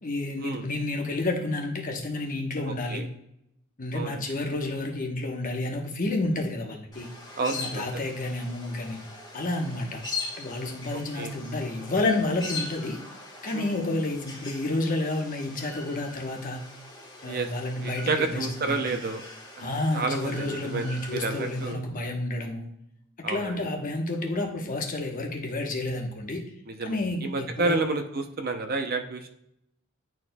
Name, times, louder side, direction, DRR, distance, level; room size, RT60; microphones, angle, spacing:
voice 1, 0.0-3.0 3.8-7.1 7.5-9.0 9.3-10.0 10.4-13.0 13.4-16.6 17.2-19.0 19.6-22.7 23.3-26.4 26.8-27.8, left 2 dB, 40° left, 2 dB, 1.0 m, -30 dB
voice 2, 2.7-3.0 3.9-4.2 7.4-7.8 11.2-11.3 13.5-13.7 17.3-17.5 17.8-19.2 19.6-19.7 19.9-21.8 23.2-23.6 26.7-29.3, right 3 dB, 45° right, 6 dB, 0.6 m, -30 dB
sound 1, 6.9-21.7, left 3 dB, 20° left, 1.4 m, -41 dB
11.0 x 4.4 x 2.2 m, 0.79 s
head